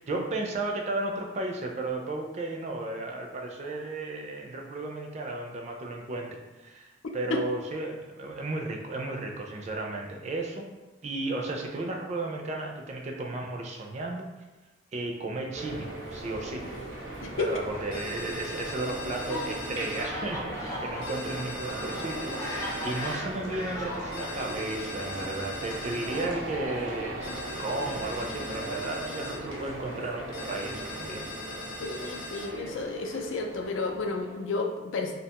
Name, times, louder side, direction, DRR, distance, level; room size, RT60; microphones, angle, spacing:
voice 1, 0.0-6.3 6.6-10.6 11.0-14.3 14.9-16.7 17.4-31.3, right 2 dB, 35° right, 1 dB, 0.4 m, -34 dB
sound 1, 15.5-34.6, right 1 dB, 80° right, 0.7 m, -38 dB
voice 2, 17.2-17.5 31.8-35.1, left 3 dB, 85° left, 3 dB, 0.4 m, -31 dB
Fowl, 17.4-24.3 25.1-27.2, left 1 dB, 15° left, 0.5 m, -40 dB
sound 2, 17.9-20.1 21.0-23.2 24.1-26.3 27.2-29.4 30.3-32.5, left 2 dB, 45° left, 0.8 m, -41 dB
2.7 x 2.2 x 2.8 m, 1.1 s
head